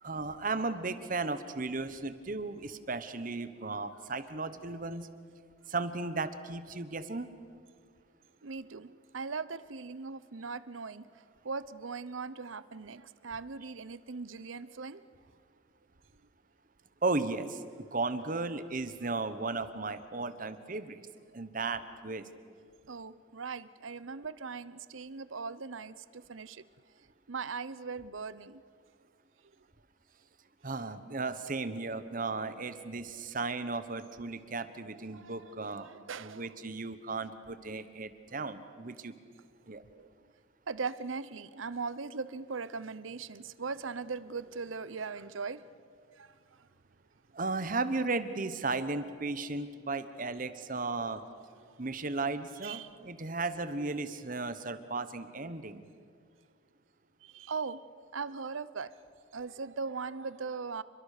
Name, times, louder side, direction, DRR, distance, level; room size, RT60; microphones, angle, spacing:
voice 1, 0.0-5.1 5.7-7.3 17.0-17.6 17.9-21.0 21.3-22.2 30.6-35.9 36.2-39.1 39.7-39.8 47.3-51.2 51.8-55.8, right 3 dB, 45° right, 12 dB, 1.2 m, -35 dB
voice 2, 8.4-15.0 22.9-26.6 27.3-28.6 34.8-36.5 37.7-37.8 39.9-40.1 40.7-45.7 46.1-46.7 51.6-51.8 52.6-52.9 57.2-57.9 58.1-59.0 59.3-60.8, right 4 dB, 80° right, 16 dB, 0.8 m, -40 dB
29.0 x 22.5 x 6.7 m, 2.1 s
head